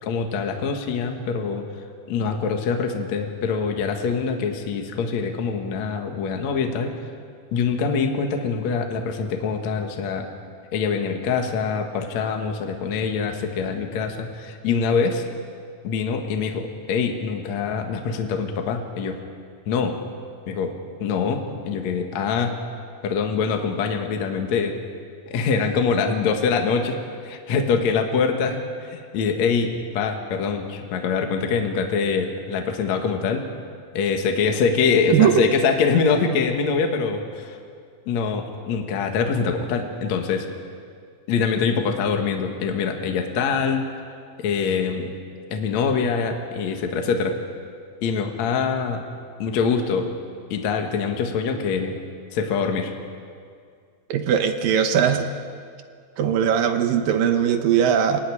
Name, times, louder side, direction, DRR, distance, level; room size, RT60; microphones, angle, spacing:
voice 1, 0.0-1.6 2.1-6.9 7.5-10.3 10.7-15.2 15.8-19.2 19.7-20.0 20.5-22.6 23.0-24.8 25.3-33.5 33.9-37.6 38.1-40.5 41.3-43.8 44.4-45.1 45.5-47.4 48.0-49.0 49.4-50.1 50.5-51.9 52.3-52.9, left 5 dB, 55° left, 4 dB, 2.2 m, -24 dB
voice 2, 54.1-55.3 56.2-58.2, right 8 dB, 70° right, 7 dB, 2.3 m, -19 dB
26.0 x 17.0 x 9.9 m, 2.2 s
omnidirectional pair, 5.1 m